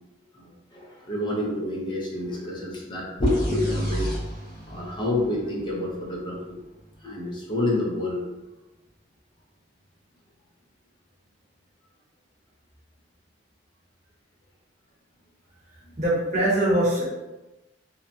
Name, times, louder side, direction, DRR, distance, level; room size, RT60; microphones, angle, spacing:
voice 1, 0.3-4.1 4.7-6.6 7.0-8.2 15.9-16.0, left 1 dB, 25° left, -3 dB, 0.6 m, -28 dB
sound 1, 3.3-6.9, right 1 dB, 55° left, 1.2 m, -32 dB
voice 2, 16.0-17.0, right 1 dB, 40° right, -7 dB, 1.0 m, -22 dB
2.8 x 2.2 x 2.5 m, 1.1 s
head